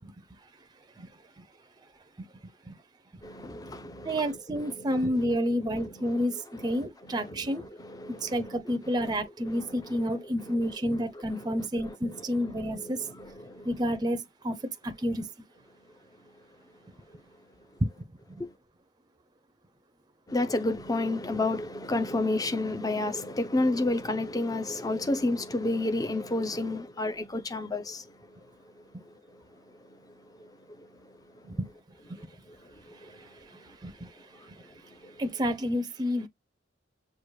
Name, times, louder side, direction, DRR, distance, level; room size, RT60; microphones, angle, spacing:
voice 1, 3.2-9.1 9.4-11.0 11.3-13.9 16.0-17.4 17.7-17.8 18.4-18.5 20.3-31.6 32.1-35.2, left 2 dB, 20° left, 0.6 m, -34 dB
voice 2, 4.0-7.6 8.2-13.0 13.6-14.6 14.8-15.3 18.3-18.4 31.4-31.7 32.1-32.2 33.8-33.9 35.2-36.3, equal, 20° right, 0.6 m, -29 dB
6.4 x 2.4 x 3.1 m
head